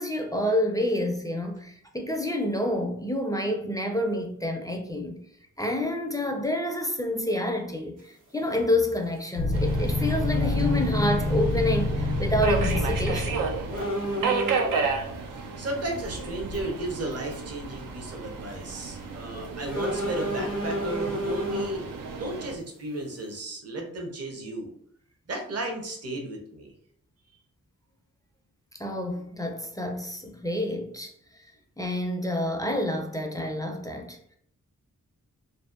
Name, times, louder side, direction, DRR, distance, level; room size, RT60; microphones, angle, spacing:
voice 1, 0.0-5.2 5.6-13.4 28.8-31.1 31.8-34.4, left 1 dB, 10° left, 0.4 m, -28 dB
sound 1, 8.0-8.1 9.7-9.9 10.2-10.3 10.6-10.7 12.6-12.9 13.2-13.3 13.7-14.9 15.9-16.1 16.5-16.6 17.1-17.3 17.8-17.9 19.7-21.8, equal, 65° right, 1.4 m, -30 dB
sound 2, 9.4-13.9, left 2 dB, 75° left, 0.5 m, -26 dB
Subway metro underground, 9.5-22.6, right 4 dB, 80° right, 0.5 m, -33 dB
voice 2, 15.3-24.7 25.3-26.7, right 1 dB, 50° right, 0.8 m, -34 dB
2.6 x 2.1 x 2.4 m
cardioid pair, 45°, 32 cm